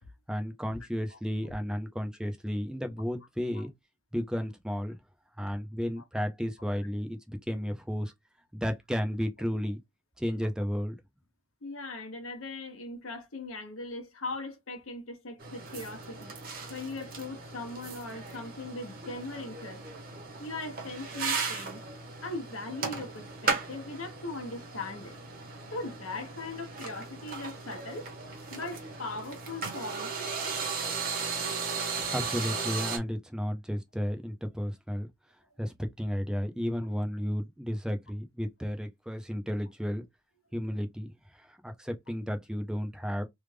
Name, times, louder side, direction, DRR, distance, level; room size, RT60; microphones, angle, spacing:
voice 1, 0.3-3.7 4.1-5.0 5.4-8.1 8.5-9.8 10.2-11.0 32.1-35.1 35.6-40.0 40.5-41.1 41.3-43.2, equal, 5° right, 0.5 m, -33 dB
voice 2, 1.1-1.5 3.5-3.7 11.6-16.3 16.7-19.8 20.4-21.8 22.2-25.2 25.7-28.1 28.5-30.6, left 2 dB, 85° left, 1.1 m, -40 dB
sound 1, 15.4-33.0, right 4 dB, 45° right, 1.0 m, -36 dB
3.4 x 2.4 x 3.3 m
head